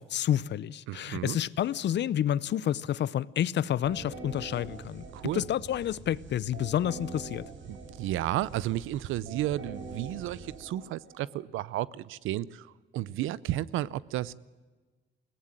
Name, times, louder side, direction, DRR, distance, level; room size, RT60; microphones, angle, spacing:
voice 1, 0.0-5.1 5.3-7.4, left 10 dB, 60° left, 0.7 m, -29 dB
voice 2, 0.9-1.4 5.1-5.4 7.7-12.7 12.9-14.3, right 14 dB, 90° right, 0.7 m, -32 dB
sound 1, 3.8-11.5, right 3 dB, 70° right, 4.5 m, -44 dB
21.0 x 17.0 x 9.9 m
cardioid pair, 90°, 20 cm